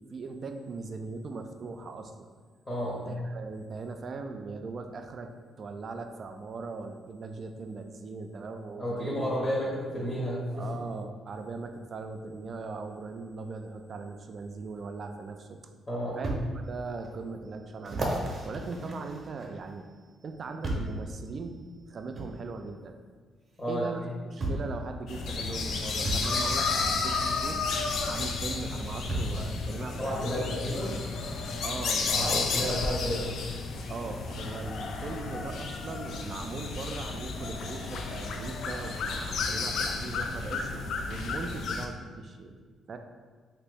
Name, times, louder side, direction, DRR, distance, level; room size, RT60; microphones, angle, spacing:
voice 1, 0.0-2.3 3.1-5.3 5.6-9.3 9.6-9.7 10.5-15.6 16.2-16.4 16.7-19.9 20.2-21.6 21.9-23.0 23.7-27.7 28.1-30.5 30.8-31.0 31.6-32.5 33.9-42.5 42.9-43.0, right 4 dB, 50° right, 6 dB, 0.3 m, -39 dB
voice 2, 2.7-3.0 8.8-10.7 15.9-16.2 18.5-18.6 23.6-23.8 30.0-30.9 32.1-33.2, equal, 30° left, -7 dB, 1.1 m, -31 dB
sound 1, 15.1-15.2 16.2-16.4 17.0-17.1 17.8-19.7 20.6-21.0 22.1-22.3 23.6-23.7 24.4-24.7 26.0-26.3 27.9-28.0 29.1-29.4 30.2-30.3, right 1 dB, 30° right, 0.7 m, -33 dB
sound 2, 25.1-41.9, left 4 dB, 70° left, 0.3 m, -32 dB
2.9 x 2.6 x 3.4 m, 1.5 s
cardioid pair, 90°, 0 cm